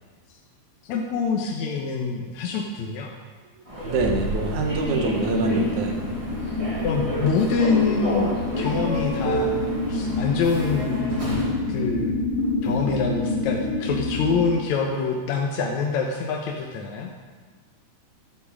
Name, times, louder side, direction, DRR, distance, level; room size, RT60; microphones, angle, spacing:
voice 1, 0.9-3.1 6.8-9.6 9.9-11.0 11.7-12.1 12.6-17.1, left 5 dB, 75° left, 0 dB, 2.3 m, -25 dB
Human voice / Subway metro underground, 3.7-11.6, right 1 dB, 15° right, 1.7 m, -30 dB
voice 2, 3.8-6.0, right 4 dB, 80° right, 2 dB, 2.8 m, -25 dB
sound 1, 4.6-14.5, left 2 dB, 55° left, 5.2 m, -27 dB
11.5 x 8.4 x 7.3 m, 1.4 s
omnidirectional pair, 3.4 m